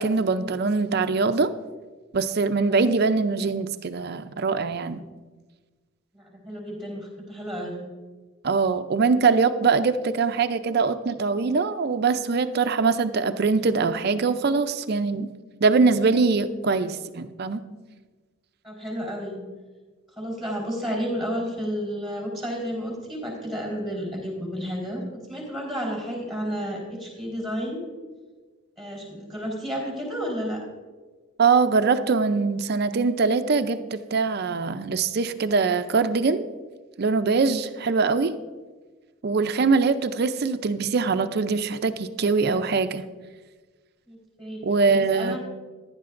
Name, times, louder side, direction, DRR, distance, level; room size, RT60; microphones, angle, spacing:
voice 1, 0.0-1.5 2.1-5.0 8.4-15.3 15.6-17.6 31.4-36.4 37.0-38.4 39.2-43.0 44.6-45.4, right 4 dB, 55° right, 11 dB, 0.5 m, -22 dB
voice 2, 6.1-7.8 18.6-19.4 20.1-25.0 25.3-27.8 28.8-30.6 44.1-44.6 45.1-45.4, equal, ahead, -3 dB, 4.0 m, -31 dB
15.5 x 11.0 x 2.5 m, 1.3 s
head